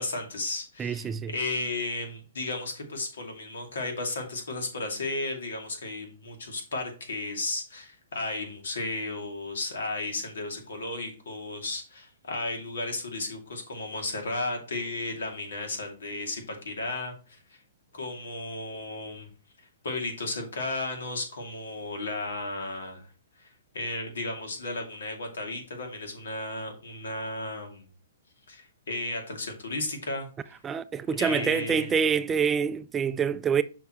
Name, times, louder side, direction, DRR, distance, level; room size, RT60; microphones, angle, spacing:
voice 1, 0.0-17.6 17.9-19.3 19.8-23.1 23.4-27.9 28.5-30.6 31.2-32.0, left 2 dB, 85° left, 2.6 m, -34 dB
voice 2, 0.8-1.3 30.6-33.6, right 6 dB, 15° right, 0.3 m, -26 dB
7.0 x 5.7 x 3.1 m
hypercardioid pair, 150°, 0 cm